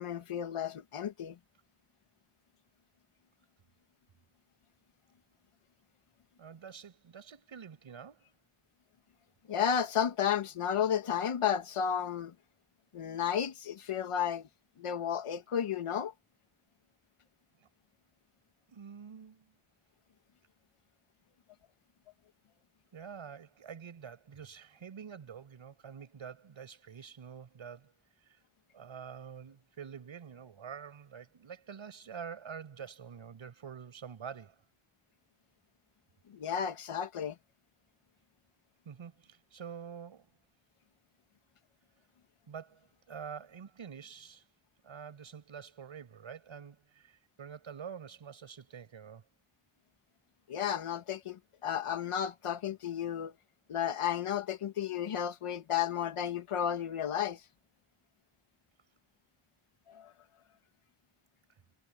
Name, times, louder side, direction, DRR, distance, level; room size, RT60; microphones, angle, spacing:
voice 1, 0.0-1.4 9.5-12.3 12.9-14.5 14.8-16.1 36.3-37.4 50.5-53.3 53.7-57.4 59.9-60.1, left 8 dB, 90° left, 2.1 m, -33 dB
voice 2, 6.4-8.3 17.6-17.7 18.7-19.5 22.9-27.9 28.2-28.4 28.7-34.6 38.8-40.3 42.5-44.5 44.8-49.3, right 7 dB, 70° right, 6.2 m, -47 dB
wide cardioid pair, 180°, 50 cm